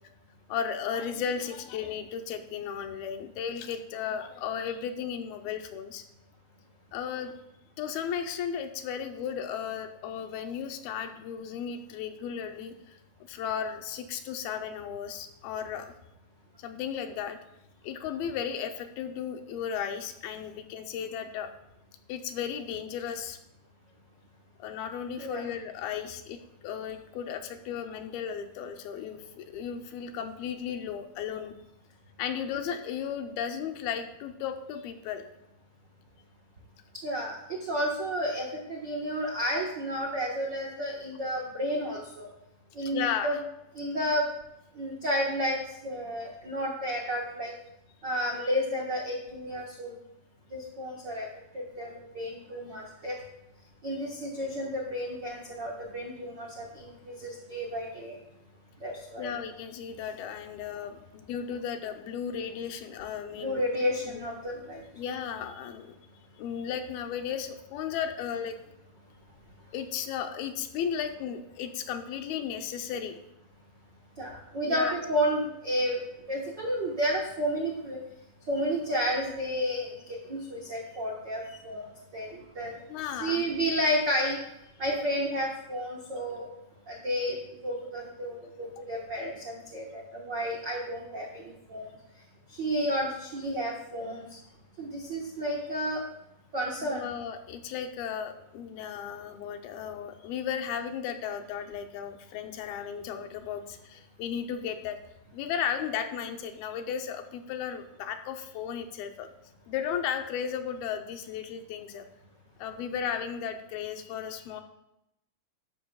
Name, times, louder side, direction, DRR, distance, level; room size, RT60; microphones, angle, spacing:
voice 1, 0.5-6.0 6.9-7.3 7.8-13.0 13.3-16.0 16.6-17.4 17.8-21.5 22.1-23.4 24.6-31.5 32.2-35.3 42.8-43.4 59.2-63.6 64.1-64.2 64.9-65.9 66.4-68.6 69.7-73.2 74.6-75.0 82.9-83.5 96.8-105.0 105.3-109.3 109.7-112.0 112.6-114.6, left 8 dB, 80° left, 6 dB, 2.7 m, -35 dB
voice 2, 37.0-42.3 42.7-43.3 43.7-44.3 44.7-47.5 48.0-49.9 50.5-51.3 51.5-53.2 53.8-58.1 58.8-59.3 63.3-64.8 74.2-76.0 76.3-78.0 78.5-82.7 83.2-84.4 84.8-86.5 86.9-87.4 87.6-91.9 92.5-94.2 94.8-96.0 96.5-97.1, equal, 90° right, -2 dB, 0.9 m, -31 dB
13.0 x 11.5 x 2.3 m, 0.85 s
omnidirectional pair, 4.4 m